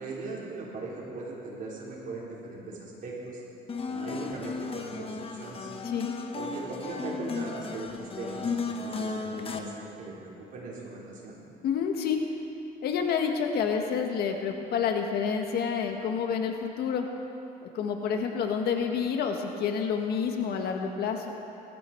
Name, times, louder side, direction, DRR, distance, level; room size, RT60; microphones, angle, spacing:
voice 1, 0.0-3.4 3.9-5.7 6.4-11.4, right 3 dB, 55° right, -5 dB, 4.6 m, -39 dB
sound 1, 3.7-9.6, left 4 dB, 35° left, 1.2 m, -35 dB
voice 2, 11.6-12.2 12.8-17.1 17.6-21.3, left 6 dB, 70° left, 3 dB, 1.7 m, -29 dB
19.5 x 14.0 x 4.6 m, 2.7 s
cardioid pair, 110°, 17 cm